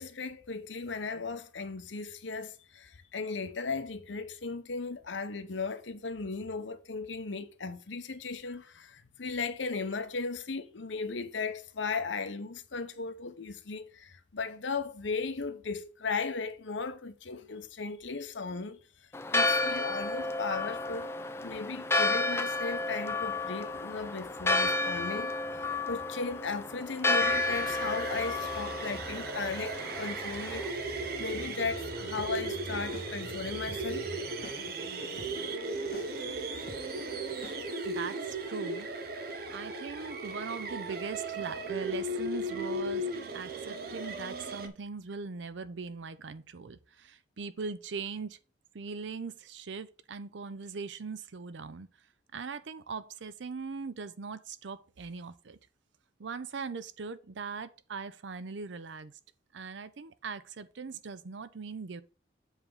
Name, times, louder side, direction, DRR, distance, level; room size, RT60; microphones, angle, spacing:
voice 1, 0.0-21.1 21.4-34.1, left 4 dB, 85° left, 0.8 m, -36 dB
Church bell, 19.1-30.7, left 3 dB, 15° left, 0.4 m, -31 dB
sound 1, 27.2-44.7, right 2 dB, 55° right, 0.9 m, -36 dB
sound 2, 32.2-32.3 32.9-33.1 33.7-33.8 34.4-34.6 35.2-35.3 35.9-36.1 36.7-36.8 37.4-37.6, left 1 dB, 50° left, 1.5 m, -45 dB
voice 2, 37.8-38.9 39.5-48.4 48.7-51.9 52.3-55.6 56.2-59.1 59.5-62.0, right 5 dB, 80° right, 0.6 m, -40 dB
7.3 x 3.4 x 5.4 m
head